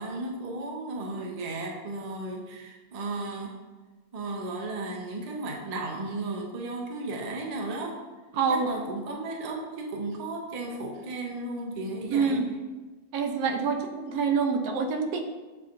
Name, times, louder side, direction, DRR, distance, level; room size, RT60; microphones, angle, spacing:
voice 1, 0.0-3.6 4.1-8.0 8.5-12.4, right 2 dB, 65° right, 0 dB, 0.3 m, -34 dB
voice 2, 8.3-8.7 12.1-12.4 13.1-15.2, right 5 dB, 80° right, 4 dB, 1.1 m, -26 dB
7.4 x 2.8 x 2.5 m, 1.3 s
omnidirectional pair, 1.6 m